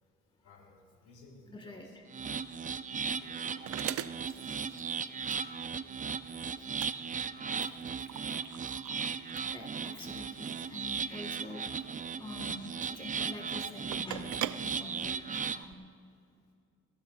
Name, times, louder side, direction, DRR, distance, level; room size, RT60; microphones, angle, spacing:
voice 1, 0.4-2.0 2.4-2.5 3.0-3.9 4.9-5.6 6.0-9.5, left 2 dB, 80° left, -2 dB, 3.2 m, -63 dB
voice 2, 1.5-2.0 9.5-16.0, left 2 dB, 15° left, 2 dB, 1.7 m, -46 dB
sound 1, 2.1-15.6, right 6 dB, 25° right, 0.5 m, -37 dB
sound 2, 2.4-15.7, right 12 dB, 75° right, 0.6 m, -44 dB
21.5 x 15.5 x 2.5 m, 2.4 s
cardioid pair, 90°, 30 cm